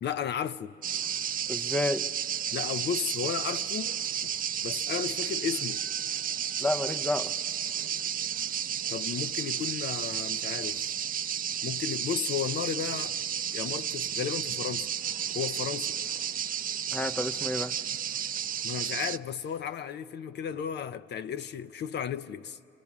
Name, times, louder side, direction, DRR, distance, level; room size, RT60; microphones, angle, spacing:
voice 1, 0.0-0.7 2.5-3.9 4.2-4.3 4.6-5.8 8.9-10.8 11.6-13.2 13.5-14.9 15.3-16.0 18.6-22.6, left 8 dB, 60° left, 0.6 m, -34 dB
sound 1, 0.8-19.2, right 9 dB, 45° right, 0.5 m, -32 dB
voice 2, 1.5-2.1 6.6-7.3 16.9-17.7, left 1 dB, 5° left, 0.5 m, -30 dB
29.0 x 25.0 x 6.0 m
cardioid pair, 90°, 20 cm